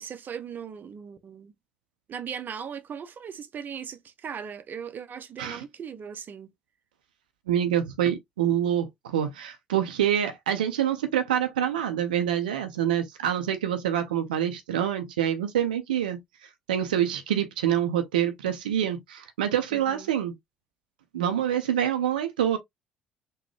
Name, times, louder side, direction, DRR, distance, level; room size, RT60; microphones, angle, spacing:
voice 1, 0.0-1.5 2.1-6.5 19.7-20.1, right 7 dB, 45° right, 0.6 m, -38 dB
voice 2, 7.5-20.3 21.1-22.6, right 10 dB, 80° right, 0.5 m, -26 dB
3.9 x 2.2 x 3.1 m
hypercardioid pair, 55°, 5 cm